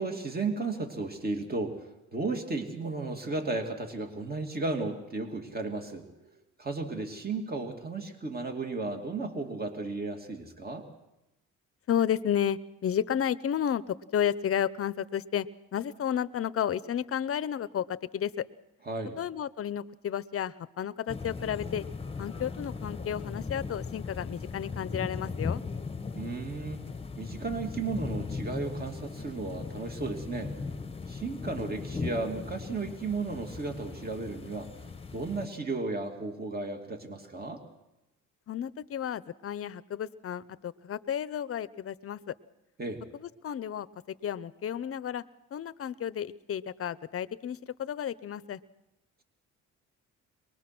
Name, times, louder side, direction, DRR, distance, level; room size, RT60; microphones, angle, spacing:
voice 1, 0.0-6.3 6.6-10.9 18.9-19.2 26.1-26.8 27.2-30.5 31.1-34.7 35.1-37.6 42.8-43.0, right 3 dB, 30° right, 4 dB, 2.7 m, -34 dB
voice 2, 11.9-15.5 15.7-18.5 19.2-21.8 22.2-25.6 38.5-42.3 43.1-45.2 45.5-48.6, left 9 dB, 50° left, 16 dB, 0.8 m, -32 dB
sound 1, 21.1-35.5, left 4 dB, 20° left, 1.1 m, -38 dB
23.5 x 20.5 x 6.1 m, 0.93 s
cardioid pair, 90°, 30 cm